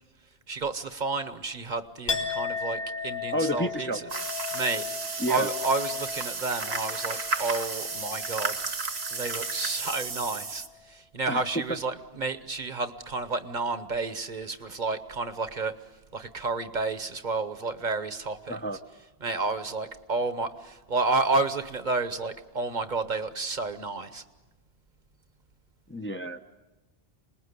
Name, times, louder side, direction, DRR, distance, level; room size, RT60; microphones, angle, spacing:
voice 1, 0.5-4.1 4.5-4.9 5.3-8.6 9.1-15.8 16.1-18.6 19.2-24.2, right 3 dB, 50° right, 11 dB, 1.1 m, -31 dB
Chink clink, 2.1-9.8 10.1-10.8, left 6 dB, 50° left, 2.6 m, -36 dB
voice 2, 3.3-4.0 5.2-5.5 11.3-11.6 18.5-18.8 25.9-26.4, right 1 dB, 15° left, 5 dB, 0.6 m, -30 dB
sound 1, 4.1-10.7, right 4 dB, 80° right, 1.7 m, -33 dB
27.0 x 20.5 x 8.1 m, 1.1 s
omnidirectional pair, 1.1 m